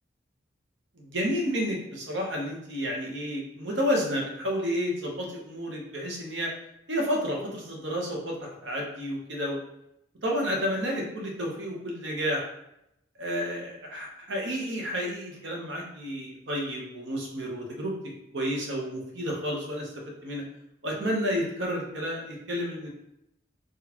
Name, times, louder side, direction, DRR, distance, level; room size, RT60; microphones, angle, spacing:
voice 1, 1.0-6.5 6.9-9.6 10.2-12.5 13.2-17.9 18.3-20.4 20.8-22.9, equal, 70° right, -1 dB, 1.0 m, -31 dB
4.0 x 3.1 x 2.9 m, 0.81 s
head